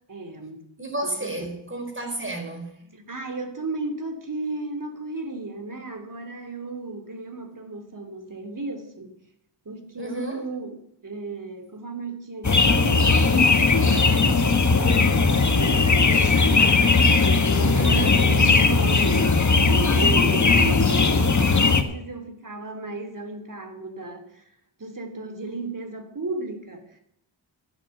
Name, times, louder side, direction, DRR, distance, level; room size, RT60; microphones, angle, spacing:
voice 1, 0.1-0.6 1.0-1.5 2.8-9.1 9.6-16.9 17.5-19.4 19.7-24.4 24.8-27.0, right 3 dB, 40° right, 3.2 m, -35 dB
voice 2, 0.8-2.8 10.0-10.4 17.7-18.3, right 2 dB, 25° right, 5.0 m, -31 dB
sound 1, 12.4-21.8, left 4 dB, 35° left, 1.6 m, -18 dB
15.5 x 9.7 x 8.0 m
cardioid pair, 70°, 48 cm